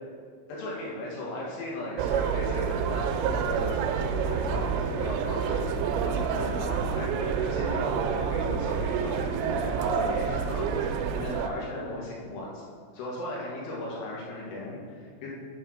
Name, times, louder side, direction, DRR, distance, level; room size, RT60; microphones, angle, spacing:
voice 1, 0.5-3.8 4.2-5.6 6.0-7.1 7.4-12.6 12.9-15.3, left 1 dB, 90° left, -4 dB, 4.5 m, -37 dB
sound 1, 2.0-11.5, right 7 dB, 90° right, 3.2 m, -28 dB
sound 2, 4.1-10.9, left 2 dB, 70° left, 3.7 m, -44 dB
8.5 x 5.4 x 6.3 m, 2.1 s
omnidirectional pair, 5.6 m